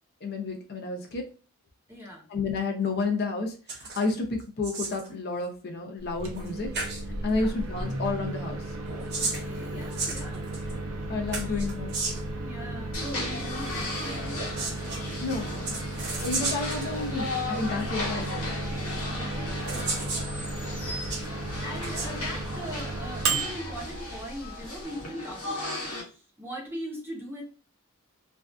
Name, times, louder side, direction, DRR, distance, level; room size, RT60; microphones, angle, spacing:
voice 1, 0.2-1.3 2.3-6.7 7.2-8.7 9.3-9.5 11.1-11.9 15.2-15.8 16.2-18.5 20.0-20.1, left 3 dB, 45° left, 2 dB, 0.4 m, -31 dB
voice 2, 1.9-2.3 7.2-7.5 9.2-10.5 11.4-11.6 12.4-14.5 19.1-20.1 21.1-27.4, equal, 10° right, -2 dB, 0.6 m, -40 dB
sound 1, 3.7-4.1 4.4-5.1 6.3-6.5 6.7-7.0 8.8-10.7 11.3-12.3 14.3-15.0 15.6-16.9 17.8-17.9 19.0-19.1 19.7-20.3 20.8-21.3 21.7-22.1, right 3 dB, 50° right, 0.7 m, -33 dB
Microwave oven, 6.0-24.8, right 2 dB, 80° right, 0.5 m, -34 dB
sound 2, 12.9-26.0, left 2 dB, 80° left, 0.9 m, -36 dB
2.5 x 2.3 x 2.2 m, 0.36 s
head